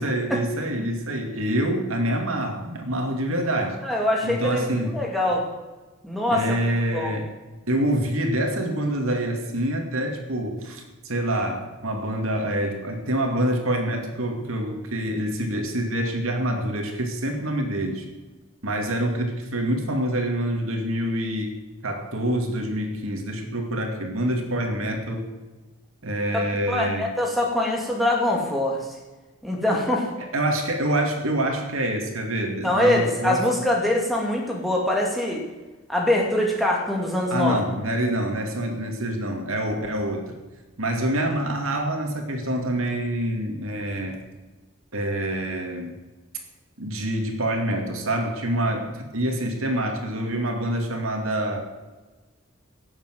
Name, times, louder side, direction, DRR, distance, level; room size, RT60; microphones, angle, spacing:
voice 1, 0.0-3.8 4.2-5.0 6.3-7.3 7.7-18.1 18.6-25.3 26.0-27.1 30.2-33.5 37.3-40.4 40.8-44.2 44.9-46.0 46.8-51.6, right 1 dB, 70° right, 3 dB, 2.5 m, -26 dB
voice 2, 3.8-4.6 4.9-5.5 6.0-6.4 6.9-7.1 26.7-28.8 29.4-30.1 32.6-35.5 35.9-37.6, left 1 dB, ahead, -1 dB, 2.4 m, -23 dB
17.5 x 7.5 x 7.8 m, 1.2 s
head